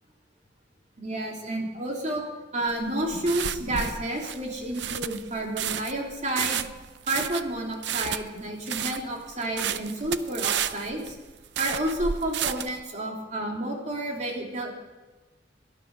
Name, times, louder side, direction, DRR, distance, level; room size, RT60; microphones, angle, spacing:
voice 1, 1.0-2.2 2.5-6.7 7.1-11.1 11.6-14.7, right 1 dB, 40° right, 0 dB, 3.1 m, -30 dB
sound 1, 2.7-12.8, right 9 dB, 70° right, 0.6 m, -32 dB
19.0 x 12.5 x 5.4 m, 1.2 s
head